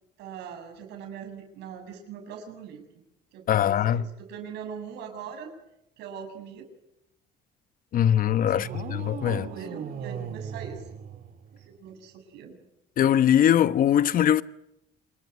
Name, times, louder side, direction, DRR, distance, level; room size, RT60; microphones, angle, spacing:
voice 1, 0.2-2.8 3.3-5.5 6.0-6.6 8.5-10.8 11.5-12.6, right 7 dB, 85° right, 6.8 m, -41 dB
voice 2, 3.5-4.0 7.9-9.4 13.0-14.4, left 10 dB, 55° left, 1.1 m, -21 dB
sound 1, 8.6-11.8, right 8 dB, 55° right, 2.5 m, -38 dB
27.5 x 22.5 x 9.8 m
cardioid pair, 110°, 17 cm